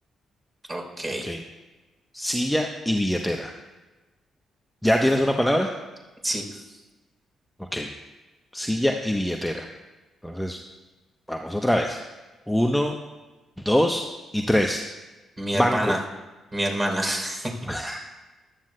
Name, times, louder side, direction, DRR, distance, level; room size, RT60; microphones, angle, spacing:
voice 1, 0.7-1.3 6.2-6.6 15.4-16.0 16.5-17.5, right 1 dB, 25° right, 1 dB, 3.4 m, -27 dB
voice 2, 2.1-3.5 4.8-5.7 7.7-7.9 8.5-9.6 10.2-10.6 11.3-12.0 12.5-12.9 13.6-14.0 14.3-14.8 15.5-15.9 17.7-18.0, equal, 5° left, 3 dB, 0.8 m, -23 dB
14.5 x 11.5 x 2.2 m, 1.2 s
hypercardioid pair, 40°, 0 cm